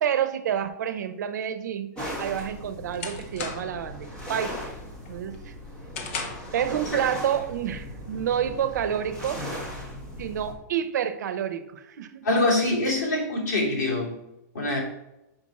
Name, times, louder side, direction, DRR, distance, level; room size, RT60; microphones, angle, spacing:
voice 1, 0.0-1.9 2.2-4.6 5.1-5.5 6.5-9.4 10.2-12.2, right 9 dB, 75° right, 11 dB, 0.7 m, -28 dB
sound 1, 1.9-10.5, equal, 10° left, 1.4 m, -38 dB
sound 2, 2.6-3.9 4.3-4.7 5.1-6.6, left 4 dB, 45° left, 1.0 m, -37 dB
voice 2, 12.2-14.2 14.5-14.8, left 2 dB, 75° left, -3 dB, 2.6 m, -24 dB
6.1 x 5.1 x 4.1 m, 0.91 s
supercardioid pair, 175°, 10 cm